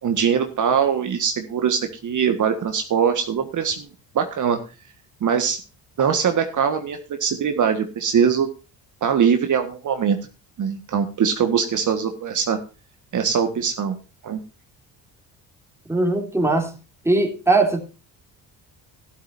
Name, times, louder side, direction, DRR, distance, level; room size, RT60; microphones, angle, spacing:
voice 1, 0.0-3.9 4.1-4.6 5.2-5.6 6.0-8.5 9.0-10.2 10.6-12.6 13.1-13.9 14.2-14.4, right 7 dB, 50° right, 1.6 m, -22 dB
voice 2, 15.9-16.8 17.0-17.8, right 2 dB, 5° right, 3.1 m, -20 dB
13.0 x 12.0 x 2.6 m
cardioid pair, 100°, 40 cm